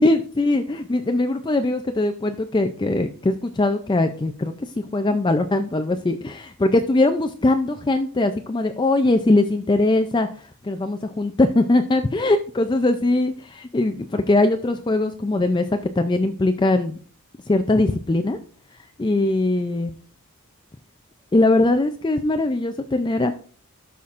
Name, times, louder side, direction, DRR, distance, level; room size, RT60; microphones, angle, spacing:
voice 1, 0.0-10.3 10.6-17.0 17.5-18.4 19.0-19.9 21.3-23.3, left 2 dB, 20° left, 7 dB, 0.4 m, -21 dB
13.0 x 5.7 x 2.5 m, 0.42 s
head